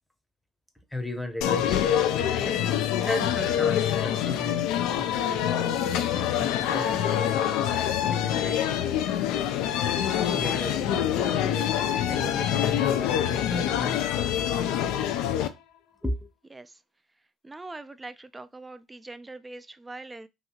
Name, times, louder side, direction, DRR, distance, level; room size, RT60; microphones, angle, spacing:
voice 1, 0.9-4.6 5.0-7.4 8.0-8.6 10.3-15.0 16.0-16.2, left 1 dB, ahead, 0.8 m, -36 dB
sound 1, 1.4-15.5, left 10 dB, 70° left, 0.3 m, -26 dB
voice 2, 17.4-20.3, right 2 dB, 15° right, 0.3 m, -42 dB
2.9 x 2.7 x 2.3 m
hypercardioid pair, 65°, 0 cm